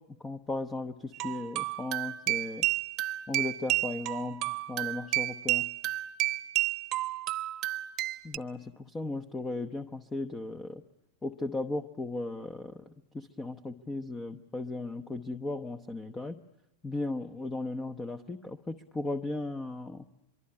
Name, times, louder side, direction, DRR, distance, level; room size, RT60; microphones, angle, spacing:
voice 1, 0.2-2.6 3.3-5.7 8.2-10.8 11.2-12.7 13.1-16.4 16.8-20.0, left 2 dB, 15° left, 9 dB, 1.0 m, -36 dB
sound 1, 1.1-8.4, right 18 dB, 45° right, 1.0 m, -31 dB
24.0 x 23.5 x 9.8 m, 0.87 s
hypercardioid pair, 120°, 0 cm